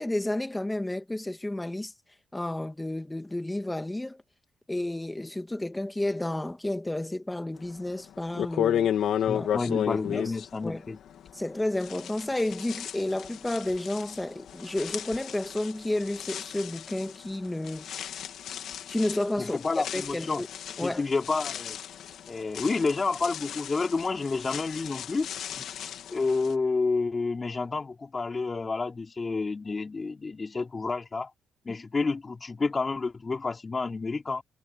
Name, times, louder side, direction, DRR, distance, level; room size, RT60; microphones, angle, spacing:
voice 1, 0.0-1.9 2.3-4.2 4.7-8.9 9.3-9.8 10.0-10.3 10.6-10.8 11.3-17.9 18.9-19.6 19.9-20.5 20.8-21.0 31.7-31.8, left 1 dB, 10° left, 1.9 m, -31 dB
sound 1, 7.8-7.9 8.3-11.5 11.8-26.5, left 10 dB, 70° left, 2.5 m, -34 dB
voice 2, 9.3-11.0 19.4-20.4 20.8-21.8 22.3-25.3 26.1-31.3 31.6-34.4, left 4 dB, 30° left, 3.5 m, -29 dB
cardioid pair, 90°, 0 cm